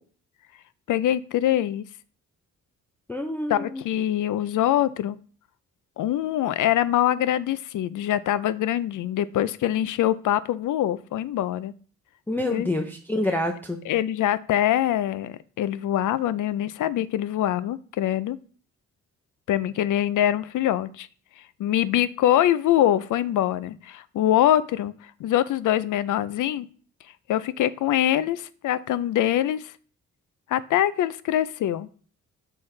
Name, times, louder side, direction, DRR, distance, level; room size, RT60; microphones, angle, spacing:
voice 1, 0.9-1.8 3.5-5.2 6.0-11.7 12.5-12.7 13.8-18.4 19.5-21.1 21.4-26.7 27.3-29.7 30.5-31.9, left 12 dB, 75° left, 16 dB, 0.5 m, -24 dB
voice 2, 3.1-3.8 12.3-13.8, left 1 dB, 5° left, 4 dB, 0.5 m, -27 dB
6.5 x 5.5 x 3.3 m, 0.42 s
cardioid pair, 105°, 31 cm